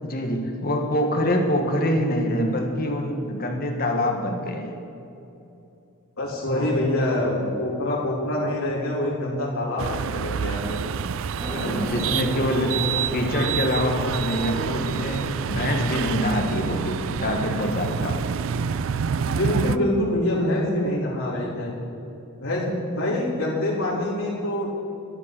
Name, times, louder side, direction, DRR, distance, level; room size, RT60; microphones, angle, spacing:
voice 1, 0.0-4.8 6.4-6.7 11.6-18.3, equal, 40° left, 2 dB, 1.5 m, -25 dB
voice 2, 6.2-10.8 19.2-21.7 22.4-24.7, left 1 dB, 70° left, -6 dB, 3.5 m, -25 dB
sound 1, 9.8-19.8, right 7 dB, 60° right, 0.3 m, -28 dB
sound 2, 11.4-19.0, equal, 15° right, 3.1 m, -37 dB
12.0 x 11.0 x 6.1 m, 2.8 s
head